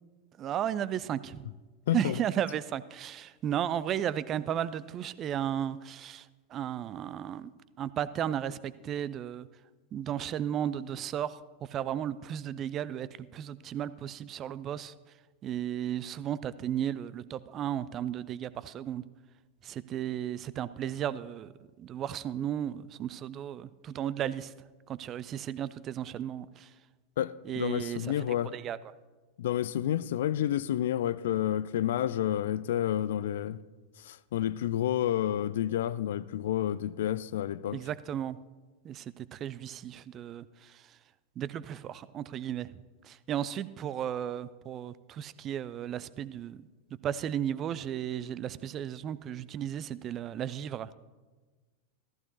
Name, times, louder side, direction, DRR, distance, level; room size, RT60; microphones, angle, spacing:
voice 1, 0.4-1.5 1.9-7.5 7.8-9.5 9.9-14.9 15.4-19.0 19.6-21.5 21.8-24.5 24.9-26.7 27.4-28.8 37.7-38.4 38.8-41.0 41.4-46.6 47.0-51.0, right 10 dB, 30° right, 0.4 m, -34 dB
voice 2, 1.9-2.2 27.2-28.5 29.4-33.6 34.0-37.8, left 11 dB, 60° left, 0.3 m, -30 dB
14.5 x 14.5 x 2.7 m
figure-of-eight pair, 90°, 0 cm